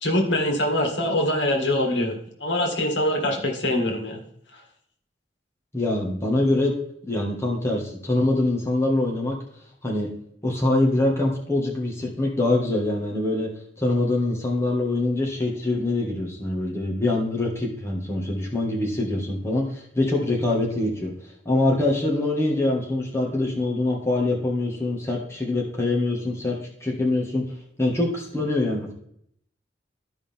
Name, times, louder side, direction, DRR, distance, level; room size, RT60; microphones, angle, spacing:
voice 1, 0.0-4.2, left 1 dB, 85° left, 2 dB, 2.0 m, -24 dB
voice 2, 5.7-6.7 7.0-9.4 9.8-10.1 10.4-13.5 13.8-27.4 27.8-28.9, left 2 dB, 15° left, -2 dB, 1.7 m, -24 dB
13.5 x 5.1 x 3.5 m, 0.69 s
head